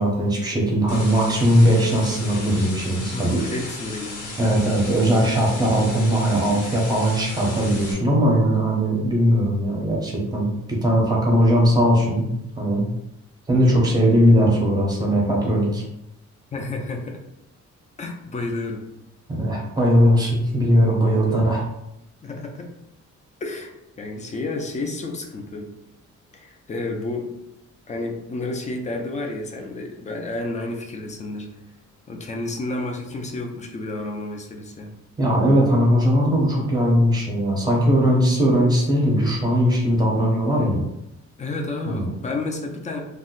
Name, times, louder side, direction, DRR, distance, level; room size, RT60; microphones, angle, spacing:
voice 1, 0.0-3.4 4.4-10.5 10.8-12.3 12.6-12.8 13.5-15.8 19.3-21.6 35.2-40.8 41.9-42.1, equal, 15° right, -2 dB, 0.7 m, -19 dB
sound 1, 0.9-7.9, left 2 dB, 85° left, 0.9 m, -36 dB
voice 2, 3.1-4.3 16.5-17.2 18.0-18.9 21.1-21.5 22.2-22.7 23.4-23.7 24.0-25.7 26.3-27.3 27.9-31.5 32.1-34.9 41.4-43.0, left 2 dB, 25° left, 2 dB, 0.4 m, -31 dB
2.6 x 2.1 x 3.8 m, 0.85 s
wide cardioid pair, 170°, 30 cm